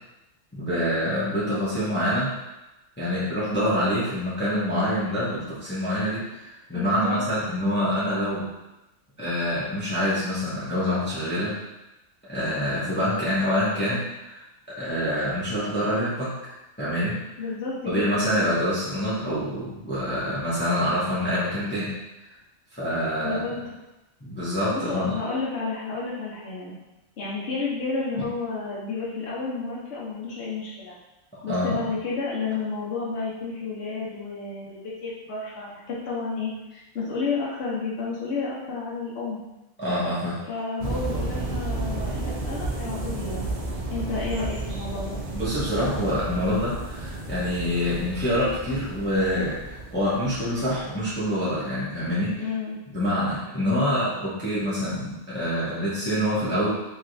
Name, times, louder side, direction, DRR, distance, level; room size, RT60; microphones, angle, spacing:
voice 1, 0.5-2.3 3.0-8.4 9.2-11.5 12.2-14.4 14.7-16.3 16.8-17.2 17.8-21.9 22.8-23.4 24.2-25.2 28.1-28.2 31.3-31.9 39.8-40.4 45.3-52.4 52.9-56.7, equal, 10° left, -10 dB, 0.7 m, -26 dB
voice 2, 6.7-7.2 17.4-18.2 23.2-23.6 24.7-26.8 27.2-31.0 31.4-39.4 40.5-43.5 43.9-45.2 52.4-52.8, left 4 dB, 60° left, -7 dB, 1.1 m, -31 dB
sound 1, 40.8-51.3, right 2 dB, 60° right, 0.3 m, -32 dB
3.0 x 3.0 x 2.6 m, 0.97 s
omnidirectional pair, 1.4 m